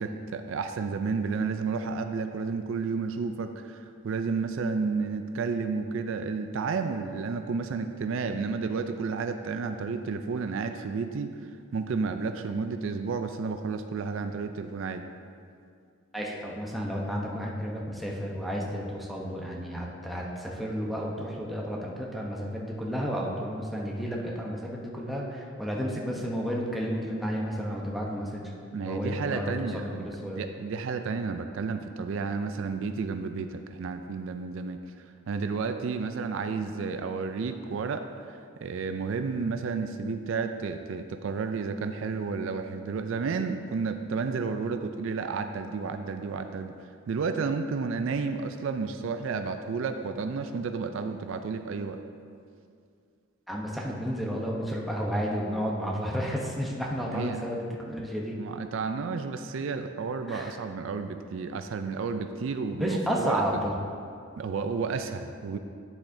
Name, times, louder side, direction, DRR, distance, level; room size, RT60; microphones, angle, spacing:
voice 1, 0.0-15.1 28.7-52.0 57.1-57.4 58.4-63.4 64.4-65.6, right 4 dB, 70° right, 8 dB, 0.4 m, -31 dB
voice 2, 16.1-28.5 28.8-30.4 53.5-58.4 60.3-60.5 62.8-63.7, equal, ahead, -3 dB, 0.8 m, -32 dB
9.7 x 7.1 x 2.7 m, 2.3 s
head